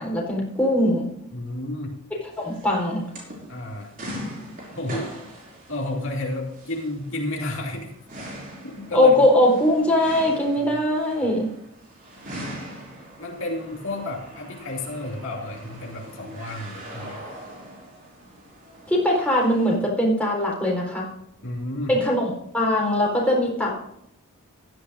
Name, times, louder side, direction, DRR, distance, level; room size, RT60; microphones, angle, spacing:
voice 1, 0.0-1.2 2.4-3.0 8.9-11.5 18.9-21.1 21.9-23.8, left 1 dB, 5° left, -2 dB, 4.2 m, -21 dB
voice 2, 1.3-1.9 3.5-3.9 4.7-5.1 5.7-7.9 8.6-9.2 10.7-10.8 13.2-17.2 21.4-21.9, left 1 dB, 60° left, -1 dB, 2.8 m, -31 dB
sound 1, 2.3-19.8, equal, 40° right, 5.6 m, -41 dB
16.5 x 13.0 x 2.6 m, 0.76 s
head